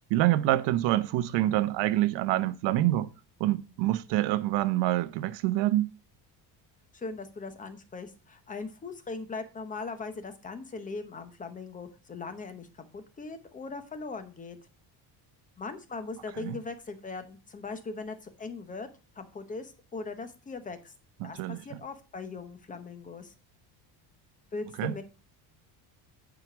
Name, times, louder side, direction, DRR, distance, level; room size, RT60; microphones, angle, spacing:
voice 1, 0.1-3.1 3.4-5.9 16.4-16.6 21.2-21.6 24.8-24.9, right 15 dB, 80° right, 0.9 m, -26 dB
voice 2, 6.9-14.6 15.6-18.9 19.1-20.9 21.2-23.3 24.5-25.0, left 4 dB, 20° left, 0.9 m, -39 dB
9.2 x 5.1 x 6.0 m
cardioid pair, 175°, 42 cm